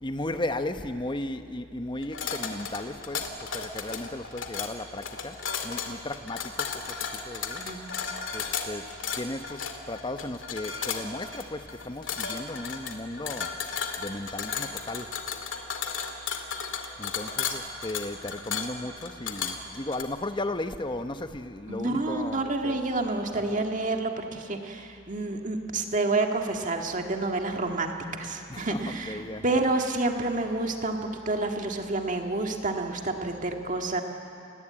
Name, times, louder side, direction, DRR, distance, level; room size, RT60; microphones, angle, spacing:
voice 1, 0.0-3.3 3.5-5.4 5.6-6.7 7.2-7.6 8.3-8.9 9.1-13.5 14.0-15.1 17.0-22.8 28.5-28.8 29.1-29.4, left 1 dB, 25° left, 9 dB, 0.9 m, -35 dB
sound 1, 2.0-20.0, left 6 dB, 70° left, 2.3 m, -34 dB
voice 2, 21.7-31.0 31.3-34.0, right 2 dB, 40° right, 3 dB, 1.9 m, -29 dB
29.0 x 20.0 x 8.8 m, 2.7 s
head